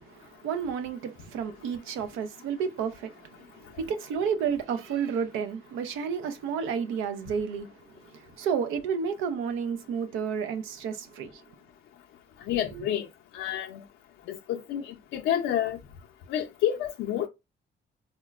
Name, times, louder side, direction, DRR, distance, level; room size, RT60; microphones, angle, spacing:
voice 1, 0.0-11.4 12.7-12.9, right 7 dB, 90° right, 0.5 m, -31 dB
voice 2, 12.5-13.1 13.3-13.8 14.3-15.8 16.3-17.3, left 10 dB, 85° left, 0.5 m, -29 dB
4.3 x 2.0 x 2.3 m
cardioid pair, 90°, 20 cm